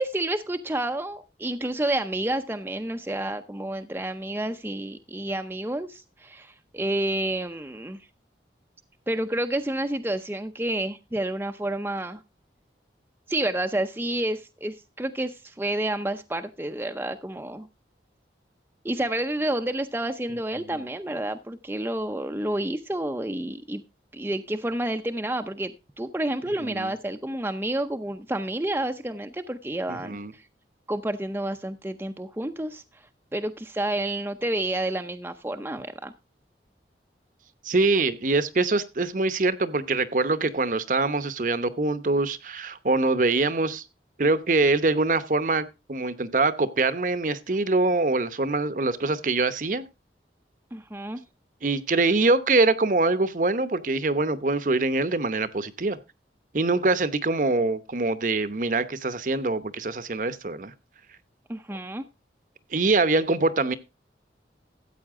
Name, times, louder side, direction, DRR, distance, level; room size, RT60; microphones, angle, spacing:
voice 1, 0.0-8.0 9.1-12.2 13.3-17.7 18.8-23.8 24.1-25.7 26.0-30.4 30.9-33.0 33.3-36.1 50.7-51.2 61.5-62.1, right 1 dB, 10° right, 0.6 m, -29 dB
voice 2, 29.9-30.3 37.6-43.8 44.2-49.8 51.6-56.0 56.5-60.7 62.7-63.8, right 3 dB, 45° right, 0.8 m, -24 dB
13.5 x 8.5 x 3.6 m
head